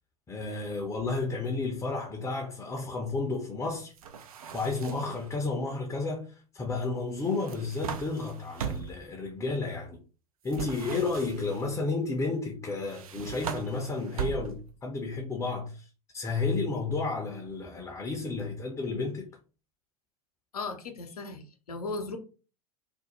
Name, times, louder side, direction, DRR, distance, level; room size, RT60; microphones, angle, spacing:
voice 1, 0.3-3.9 4.5-10.0 10.4-15.9 16.1-19.3, left 3 dB, 15° left, 0.5 m, -32 dB
sound 1, 4.0-5.2 7.2-9.1 10.5-11.6 12.8-14.8, right 7 dB, 70° right, 0.4 m, -38 dB
voice 2, 20.5-22.2, left 3 dB, 75° left, 0.6 m, -37 dB
2.5 x 2.0 x 2.9 m
figure-of-eight pair, 85°, 19 cm